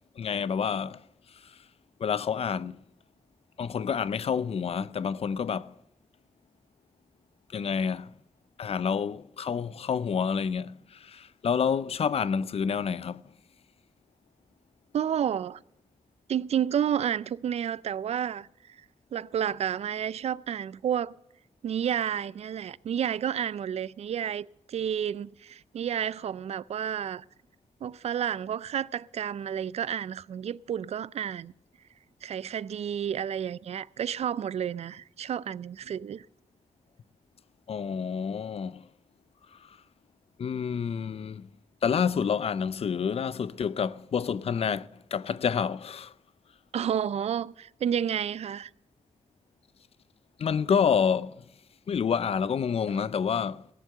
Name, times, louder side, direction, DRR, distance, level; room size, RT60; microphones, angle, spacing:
voice 1, 0.2-1.0 1.3-1.6 2.0-2.8 3.6-5.7 7.5-8.1 8.6-13.2 37.7-38.9 39.5-39.8 40.4-41.5 41.8-46.1 50.4-51.5 51.9-53.7, left 7 dB, 60° left, 0.5 m, -28 dB
voice 2, 14.9-15.6 16.3-18.8 19.1-21.1 21.6-27.2 27.8-31.5 32.2-36.3 46.7-48.7, right 9 dB, 65° right, 0.4 m, -30 dB
17.0 x 7.3 x 6.7 m
cardioid pair, 70°, 11 cm